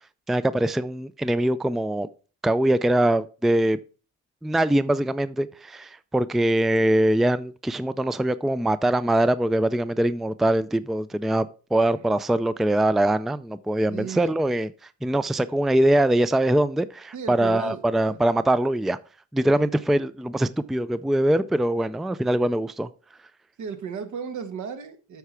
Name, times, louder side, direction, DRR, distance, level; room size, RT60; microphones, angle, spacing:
voice 1, 0.3-2.1 2.4-3.8 4.4-14.7 15.0-19.0 19.3-22.9, right 1 dB, ahead, 0.4 m, -23 dB
voice 2, 13.9-14.3 17.1-18.2 19.5-19.7 23.6-25.2, right 6 dB, 70° right, 1.6 m, -35 dB
8.2 x 4.7 x 5.8 m
cardioid pair, 90°, 30 cm